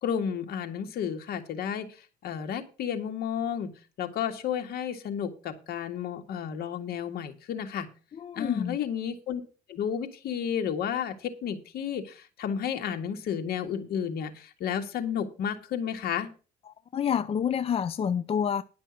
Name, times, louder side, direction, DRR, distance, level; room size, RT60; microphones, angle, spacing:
voice 1, 0.0-1.9 2.2-3.7 4.0-7.9 8.4-9.4 9.7-16.3, left 8 dB, 65° left, 1.9 m, -32 dB
voice 2, 8.1-8.8 16.7-18.6, left 8 dB, 35° left, 0.5 m, -28 dB
11.0 x 6.1 x 7.2 m
cardioid pair, 110°, 17 cm